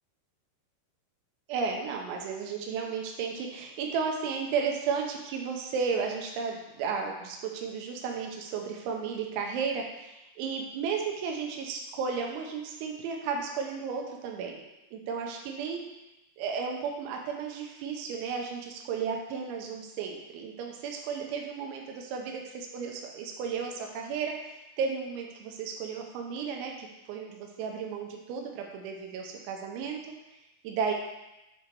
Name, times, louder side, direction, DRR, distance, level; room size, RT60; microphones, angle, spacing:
voice 1, 1.5-14.6 14.9-15.8 16.4-30.0 30.6-30.9, right 5 dB, 80° right, 1 dB, 2.9 m, -34 dB
7.6 x 3.4 x 4.4 m, 0.95 s
omnidirectional pair, 5.8 m